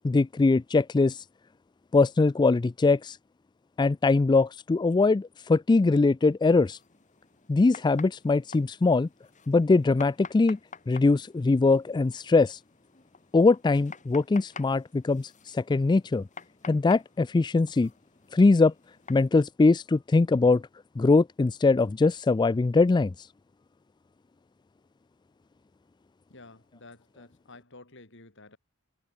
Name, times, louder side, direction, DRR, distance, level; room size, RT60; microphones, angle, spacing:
voice 1, 0.0-1.2 1.9-3.2 3.8-6.8 7.5-9.1 9.5-10.6 10.9-12.6 13.3-16.2 16.7-17.9 18.3-18.7 19.1-20.6 21.0-23.3, left 3 dB, 20° left, 0.3 m, -22 dB
sound 1, 6.5-19.3, left 5 dB, 35° left, 7.7 m, -50 dB
voice 2, 26.3-28.6, left 2 dB, 60° left, 4.9 m, -51 dB
head